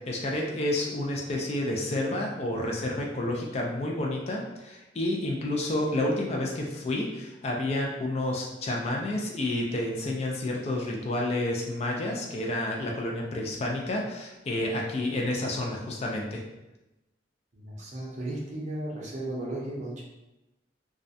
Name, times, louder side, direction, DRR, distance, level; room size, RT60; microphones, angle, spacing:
voice 1, 0.1-16.4, left 1 dB, 35° left, -1 dB, 0.3 m, -30 dB
voice 2, 17.5-20.0, right 1 dB, 40° right, -3 dB, 0.6 m, -35 dB
2.3 x 2.1 x 2.6 m, 0.99 s
head